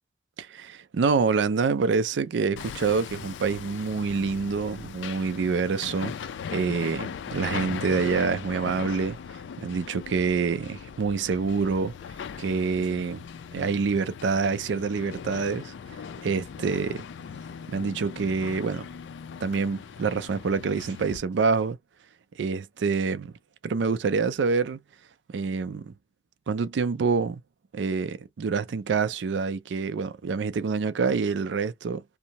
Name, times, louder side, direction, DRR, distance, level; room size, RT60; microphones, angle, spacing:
voice 1, 0.4-6.1 6.5-9.2 9.6-11.9 12.4-13.2 13.5-15.7 16.2-17.0 17.7-18.9 19.4-21.8 22.4-23.3 23.6-24.8 25.3-25.9 26.5-27.4 27.7-32.0, right 5 dB, 85° right, 0.4 m, -26 dB
Hammer, 2.6-21.2, left 7 dB, 90° left, 0.3 m, -39 dB
2.7 x 2.0 x 2.9 m
head